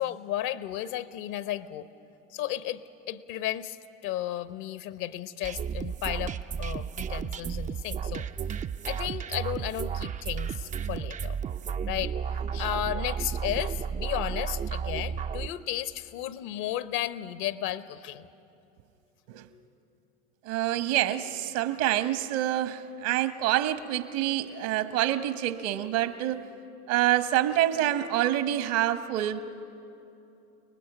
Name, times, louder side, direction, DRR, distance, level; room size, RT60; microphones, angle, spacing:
voice 1, 0.0-1.9 2.3-3.8 4.0-8.3 8.9-11.4 11.8-12.1 12.5-18.3, left 12 dB, 60° left, 13 dB, 1.0 m, -34 dB
sound 1, 5.4-15.5, right 7 dB, 20° right, 0.4 m, -33 dB
voice 2, 20.4-26.4 26.9-29.4, right 13 dB, 65° right, 11 dB, 1.3 m, -27 dB
30.0 x 19.5 x 6.1 m, 2.8 s
hypercardioid pair, 75°, 36 cm